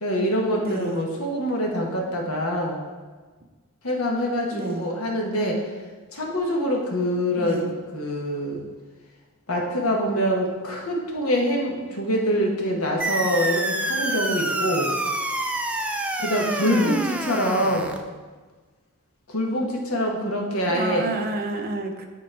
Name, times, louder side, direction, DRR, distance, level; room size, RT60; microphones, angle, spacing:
voice 1, 0.0-2.8 3.8-5.6 6.1-8.6 9.5-14.9 16.2-18.0 19.3-21.1, equal, 75° left, 0 dB, 1.2 m, -25 dB
voice 2, 0.6-1.0 4.5-4.9 7.4-7.7 16.6-17.0 20.7-22.1, right 2 dB, 45° right, 3 dB, 0.7 m, -30 dB
sound 1, 13.0-18.0, right 1 dB, 5° right, 0.3 m, -27 dB
8.9 x 3.1 x 4.6 m, 1.3 s
head